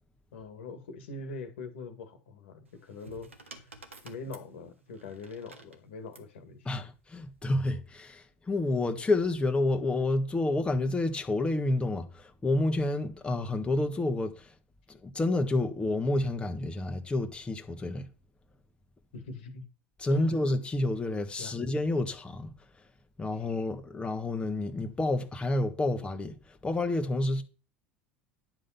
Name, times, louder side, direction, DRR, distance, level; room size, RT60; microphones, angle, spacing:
voice 1, 0.3-3.7 4.0-6.7 19.1-19.7 20.1-20.5 21.4-21.5 23.3-23.5, left 3 dB, 70° left, 1.8 m, -43 dB
sound 1, 2.6-6.3 7.4-7.8, right 3 dB, 90° right, 1.5 m, -52 dB
voice 2, 6.6-14.5 14.9-18.1 20.0-22.5 23.2-27.4, left 2 dB, 15° left, 1.5 m, -29 dB
10.5 x 5.1 x 5.7 m
figure-of-eight pair, 75°, 7 cm